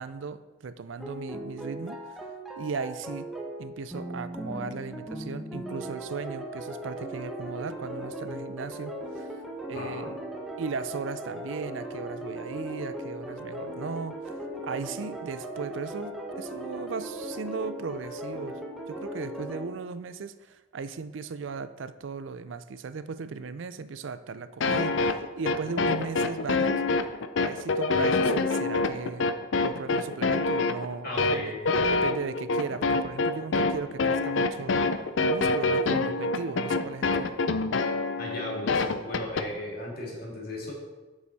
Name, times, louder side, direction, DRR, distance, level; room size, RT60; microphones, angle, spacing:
voice 1, 0.0-2.0 2.6-3.3 3.6-9.4 9.7-10.2 10.6-14.3 14.6-26.8 27.4-29.3 29.6-31.5 31.9-34.8 35.2-37.3, right 5 dB, 70° right, 13 dB, 0.4 m, -37 dB
sound 1, 1.0-19.6, right 1 dB, ahead, 0.9 m, -38 dB
voice 2, 9.7-10.1 31.0-31.9 38.2-40.7, left 1 dB, 50° left, -3 dB, 2.2 m, -36 dB
sound 2, 24.6-39.5, left 3 dB, 70° left, 0.5 m, -26 dB
8.6 x 6.3 x 4.1 m, 1.2 s
head